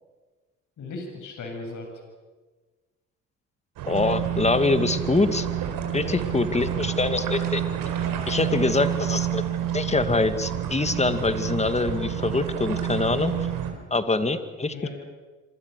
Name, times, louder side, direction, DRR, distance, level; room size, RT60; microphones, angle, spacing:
voice 1, 0.8-2.0 5.9-6.2 6.6-6.7 8.2-8.6 14.7-14.9, left 3 dB, 55° left, 3 dB, 7.4 m, -37 dB
voice 2, 3.8-5.5 5.9-7.6 8.3-9.4 9.7-13.3 13.9-14.9, left 3 dB, 20° left, 10 dB, 2.5 m, -24 dB
sound 1, 3.8-13.7, right 10 dB, 65° right, 4.5 m, -29 dB
26.5 x 26.0 x 6.7 m, 1.3 s
hypercardioid pair, 60°, 36 cm